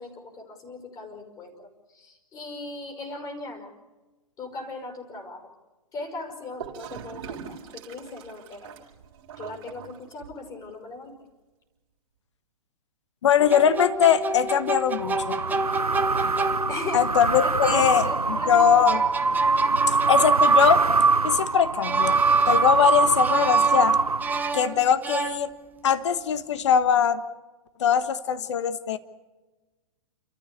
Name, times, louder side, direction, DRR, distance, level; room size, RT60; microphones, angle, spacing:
voice 1, 0.0-3.7 4.4-5.5 5.9-7.4 7.7-8.7 9.4-11.1 16.7-18.9, left 3 dB, 20° left, 3 dB, 5.4 m, -37 dB
Gurgling / Toilet flush, 6.6-10.6, right 8 dB, 40° right, 3.8 m, -41 dB
voice 2, 13.2-15.2 16.9-18.0 18.5-19.0 19.9-20.8 21.2-22.2 22.5-24.0 24.5-25.5 25.8-27.2 27.8-29.0, left 8 dB, 50° left, 12 dB, 1.4 m, -21 dB
sound 1, 13.4-17.1 18.6-21.3 21.8-22.9 23.2-25.9, right 3 dB, 10° right, 1.1 m, -31 dB
sound 2, 15.0-24.7, right 4 dB, 85° right, 0.9 m, -23 dB
30.0 x 14.0 x 8.3 m, 1.2 s
figure-of-eight pair, 120°, 19 cm